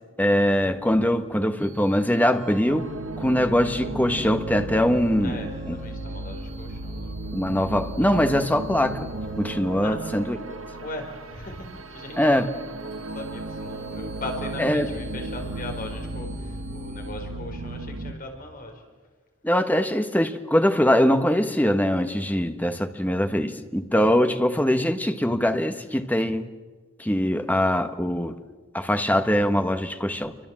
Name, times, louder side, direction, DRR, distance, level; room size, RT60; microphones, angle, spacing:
voice 1, 0.2-2.9 3.2-5.4 5.7-5.8 7.3-9.1 9.4-10.4 12.2-12.5 14.6-14.9 19.4-26.5 27.0-28.3 28.7-30.4, equal, 10° left, 1.4 m, -22 dB
sound 1, 1.6-17.1, right 1 dB, 35° right, 6.2 m, -44 dB
sound 2, 2.7-18.1, right 2 dB, 90° right, 1.4 m, -35 dB
voice 2, 5.2-7.3 9.8-10.0 10.8-12.4 13.0-18.8, left 2 dB, 45° left, 4.6 m, -39 dB
28.0 x 24.5 x 7.6 m
head